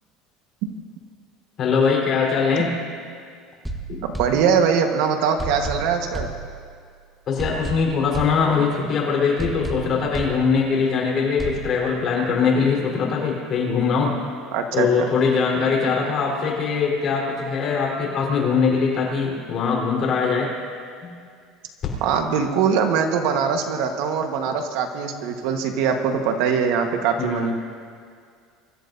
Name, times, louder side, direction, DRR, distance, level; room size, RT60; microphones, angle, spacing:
voice 1, 1.6-2.9 3.9-4.0 7.3-14.2 14.7-20.5 21.0-21.1 27.2-27.5, left 5 dB, 35° left, -2 dB, 4.0 m, -22 dB
sound 1, 3.6-4.9 5.4-6.9 7.4-8.9 9.4-10.9 11.4-11.7, right 2 dB, ahead, 1.0 m, -33 dB
voice 2, 4.2-6.3 14.5-15.1 22.0-27.5, right 6 dB, 70° right, 5 dB, 1.3 m, -22 dB
24.5 x 13.5 x 2.7 m, 2.2 s
cardioid pair, 150°, 0 cm